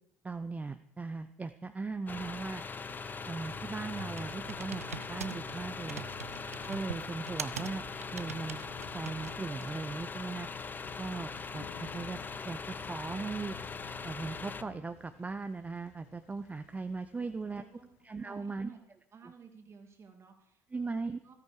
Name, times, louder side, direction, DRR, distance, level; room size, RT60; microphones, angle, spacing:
voice 1, 0.2-2.6 3.3-6.1 6.7-7.8 8.1-8.6 8.9-10.5 11.0-12.2 12.4-12.6 12.9-13.6 14.0-17.6 18.0-18.7 20.7-21.2, right 4 dB, 20° right, 9 dB, 0.7 m, -38 dB
sound 1, 2.1-14.6, left 5 dB, 25° left, 0.7 m, -41 dB
Computer keyboard, 2.9-9.9, right 7 dB, 90° right, 0.4 m, -45 dB
Thunder, 8.7-18.5, left 10 dB, 70° left, 1.2 m, -55 dB
voice 2, 17.2-17.9 18.2-18.8 19.1-21.3, right 5 dB, 35° right, 4 dB, 2.4 m, -54 dB
13.5 x 13.5 x 4.9 m, 0.82 s
figure-of-eight pair, 60°, 8 cm